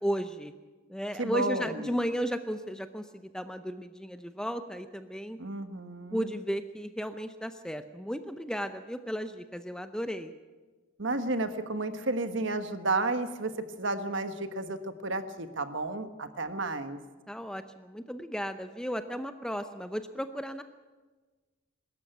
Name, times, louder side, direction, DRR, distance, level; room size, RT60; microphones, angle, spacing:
voice 1, 0.0-0.5 0.9-5.4 6.1-10.3 17.3-20.6, equal, 5° left, 9 dB, 0.6 m, -34 dB
voice 2, 1.2-2.0 5.4-6.3 11.0-17.0, right 2 dB, 55° right, 9 dB, 1.3 m, -32 dB
23.0 x 13.5 x 9.1 m, 1.3 s
head